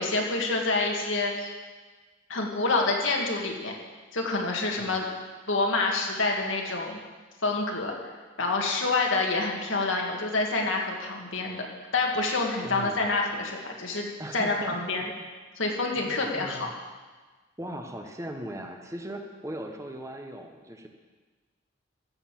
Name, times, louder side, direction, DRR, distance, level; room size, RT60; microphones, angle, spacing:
voice 1, 0.0-1.5 2.3-3.7 4.1-5.1 5.5-7.0 7.4-7.9 8.4-11.7 11.9-15.1 15.6-16.7, left 3 dB, 80° left, 0 dB, 2.1 m, -27 dB
voice 2, 4.8-5.1 12.6-13.1 14.2-15.3 16.0-16.7 17.6-20.9, right 1 dB, 15° right, 4 dB, 1.0 m, -39 dB
14.5 x 6.7 x 7.5 m, 1.4 s
head